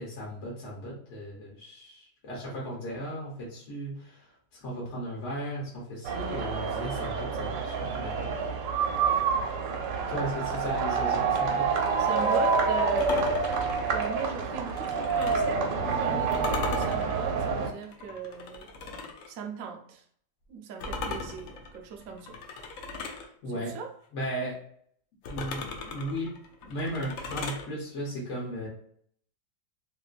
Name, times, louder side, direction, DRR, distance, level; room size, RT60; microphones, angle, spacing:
voice 1, 0.0-4.3 4.6-8.3 8.8-9.0 10.1-11.7 23.0-23.7 24.1-24.6 25.3-26.3 26.6-28.7, equal, 50° left, -4 dB, 1.0 m, -36 dB
sound 1, 6.0-17.7, right 5 dB, 85° right, 1.3 m, -28 dB
voice 2, 12.0-13.3 13.9-18.7 19.3-20.0 20.5-22.4 23.5-23.9, right 6 dB, 70° right, 3 dB, 0.8 m, -38 dB
sound 2, 13.0-15.6 16.3-19.3 20.8-23.3 25.2-27.7, left 3 dB, 75° left, 0.7 m, -38 dB
3.0 x 2.8 x 2.4 m, 0.63 s
omnidirectional pair, 1.9 m